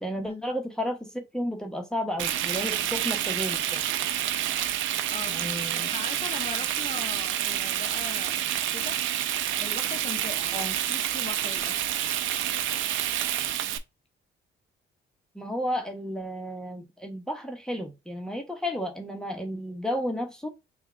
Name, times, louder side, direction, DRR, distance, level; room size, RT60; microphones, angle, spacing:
voice 1, 0.0-3.8 5.3-5.9 10.5-10.7 15.3-20.5, equal, 5° left, 1.0 m, -32 dB
Frying (food), 2.2-13.8, right 11 dB, 80° right, 0.5 m, -28 dB
voice 2, 5.1-9.0 9.6-12.1, left 4 dB, 30° left, 0.7 m, -40 dB
3.6 x 2.3 x 4.3 m
cardioid pair, 90°, 20 cm